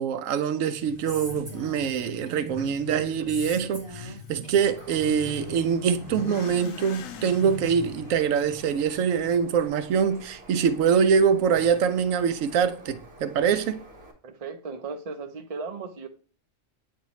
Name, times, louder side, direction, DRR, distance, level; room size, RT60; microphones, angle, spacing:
voice 1, 0.0-13.8, right 7 dB, 80° right, 1.0 m, -24 dB
Motorcycle / Accelerating revving vroom, 0.8-9.7, left 7 dB, 85° left, 1.0 m, -42 dB
Female speech woman speaking, 1.1-2.8 3.3-5.8, right 1 dB, 20° right, 2.8 m, -42 dB
Bird, 4.6-14.1, right 1 dB, 50° right, 1.8 m, -49 dB
voice 2, 14.2-16.1, right 4 dB, 35° right, 0.7 m, -36 dB
8.7 x 4.3 x 3.0 m
omnidirectional pair, 1.3 m